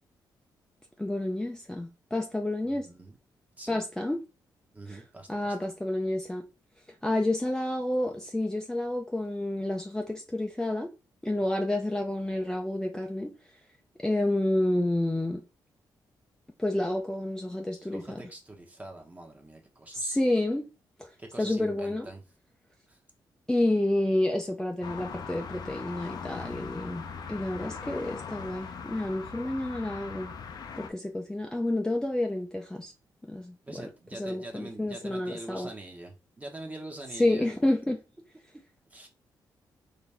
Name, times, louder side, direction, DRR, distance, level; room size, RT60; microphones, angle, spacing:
voice 1, 1.0-2.9 3.7-4.2 4.9-5.0 5.3-6.4 7.0-10.9 11.2-13.3 14.0-15.4 16.6-18.2 19.9-20.7 21.0-21.1 21.4-22.1 23.5-27.0 27.3-30.3 30.8-32.9 33.3-33.8 34.1-35.7 37.2-38.0, left 1 dB, 10° left, 0.5 m, -29 dB
voice 2, 2.6-3.2 3.6-3.8 4.7-5.6 17.7-20.2 21.2-22.2 22.9-23.0 33.6-37.5 38.9-39.1, right 2 dB, 20° right, 1.1 m, -44 dB
sound 1, 24.8-30.9, left 6 dB, 60° left, 0.6 m, -40 dB
4.0 x 2.6 x 3.4 m
cardioid pair, 80°, 8 cm